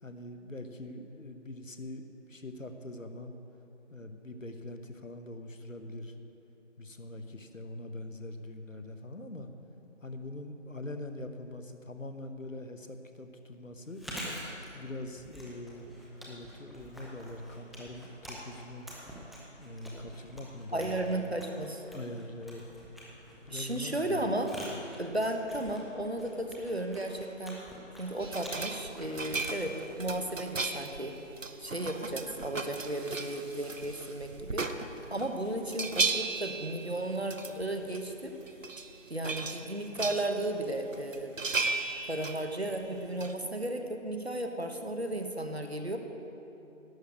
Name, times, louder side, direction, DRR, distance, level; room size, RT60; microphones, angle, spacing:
voice 1, 0.0-3.4 3.9-6.2 6.8-9.5 10.0-14.0 14.7-15.9 16.2-18.9 19.6-21.3 21.9-22.6 23.4-24.6, left 1 dB, 75° left, 7 dB, 1.1 m, -43 dB
Chewing mastication, 13.8-30.7, equal, ahead, 0.7 m, -47 dB
voice 2, 20.7-21.8 23.5-24.5 25.0-27.6 28.0-31.1 31.6-34.7 35.1-38.4 39.1-41.4 42.1-46.0, right 1 dB, 55° right, 5 dB, 1.0 m, -34 dB
sound 1, 28.2-35.3 35.6-37.7 37.9-38.0 38.4-38.9 39.2-40.6 40.9-43.3, right 4 dB, 75° right, 0.8 m, -36 dB
11.0 x 6.5 x 8.4 m, 2.9 s
figure-of-eight pair, 175°, 39 cm